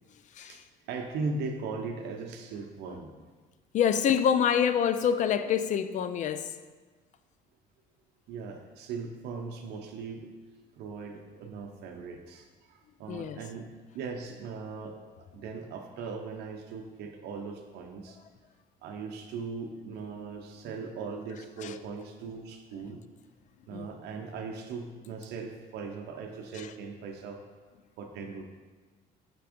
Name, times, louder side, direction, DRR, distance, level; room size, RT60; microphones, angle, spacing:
voice 1, 0.5-3.1 8.3-10.3 10.8-13.7 13.9-15.0 15.3-18.2 18.8-23.0 23.7-27.4 28.0-28.4, right 4 dB, 80° right, 3 dB, 0.6 m, -39 dB
voice 2, 3.7-6.5 13.1-13.4 21.6-21.8 23.7-23.9 26.6-26.7, left 8 dB, 45° left, 12 dB, 0.4 m, -26 dB
5.9 x 3.4 x 5.0 m, 1.3 s
cardioid pair, 110°, 17 cm